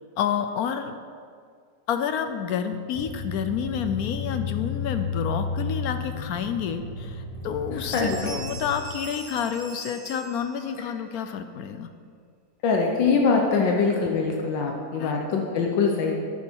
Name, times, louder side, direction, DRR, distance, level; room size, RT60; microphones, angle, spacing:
voice 1, 0.2-0.9 1.9-11.9 15.0-15.1, left 7 dB, 70° left, 8 dB, 0.9 m, -29 dB
sound 1, 2.9-8.8, left 5 dB, 15° left, 1.8 m, -32 dB
Bell, 7.4-7.5 7.8-10.9, right 3 dB, 80° right, 2.5 m, -42 dB
voice 2, 7.9-8.3 12.6-16.1, left 4 dB, 85° left, 1 dB, 1.6 m, -23 dB
11.0 x 8.6 x 4.6 m, 2.1 s
omnidirectional pair, 2.0 m